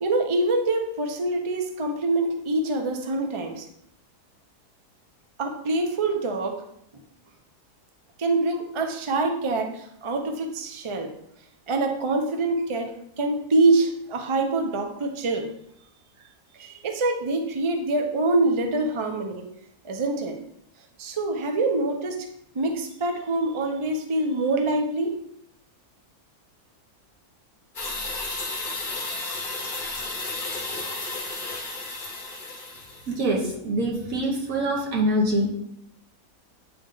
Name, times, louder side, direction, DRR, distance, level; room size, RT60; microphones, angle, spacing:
voice 1, 0.0-3.7 5.4-6.6 8.2-11.1 11.7-15.5 16.5-19.4 19.8-20.4 21.0-22.3 22.5-25.2, right 2 dB, 40° right, 4 dB, 0.4 m, -25 dB
sound 1, 27.8-33.2, left 3 dB, 35° left, 1.1 m, -33 dB
voice 2, 33.1-35.5, right 1 dB, 65° right, -1 dB, 1.5 m, -24 dB
9.0 x 3.2 x 3.8 m, 0.73 s
omnidirectional pair, 1.6 m